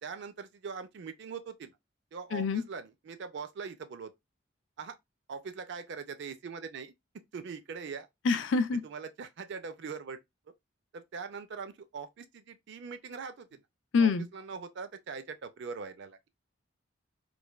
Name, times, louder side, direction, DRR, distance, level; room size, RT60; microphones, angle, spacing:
voice 1, 0.0-1.8 2.1-4.1 4.8-5.0 5.3-6.9 7.3-8.1 8.7-10.2 10.9-13.6 13.9-16.3, right 5 dB, 60° right, 0.4 m, -42 dB
voice 2, 2.3-2.6 8.2-8.8 13.9-14.3, left 4 dB, 65° left, 0.4 m, -26 dB
3.1 x 2.2 x 2.2 m
head